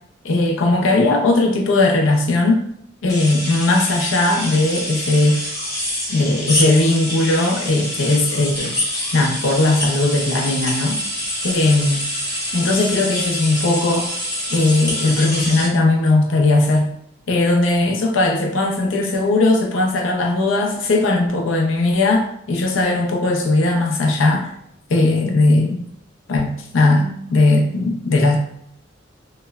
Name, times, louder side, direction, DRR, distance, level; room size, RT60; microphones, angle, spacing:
voice 1, 0.2-2.6 3.0-5.4 6.1-8.8 9.1-11.0 11.4-12.0 12.5-14.1 14.5-16.9 17.3-24.5 24.9-25.8 26.3-28.4, left 2 dB, 75° left, 1 dB, 0.5 m, -18 dB
sound 1, 3.1-15.7, left 1 dB, 15° left, 0.9 m, -26 dB
2.9 x 2.0 x 2.2 m, 0.72 s
head